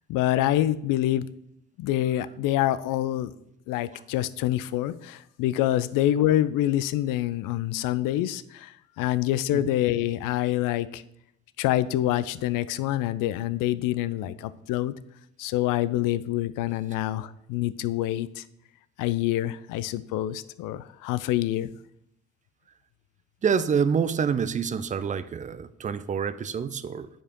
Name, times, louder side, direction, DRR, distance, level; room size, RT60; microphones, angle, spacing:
voice 1, 0.1-1.3 1.8-3.3 3.7-11.0 11.6-14.9 15.4-18.4 19.0-21.7, left 13 dB, 55° left, 16 dB, 0.4 m, -26 dB
voice 2, 23.4-27.1, right 6 dB, 20° right, 14 dB, 0.3 m, -27 dB
8.7 x 4.9 x 3.0 m, 0.78 s
hypercardioid pair, 45°, 39 cm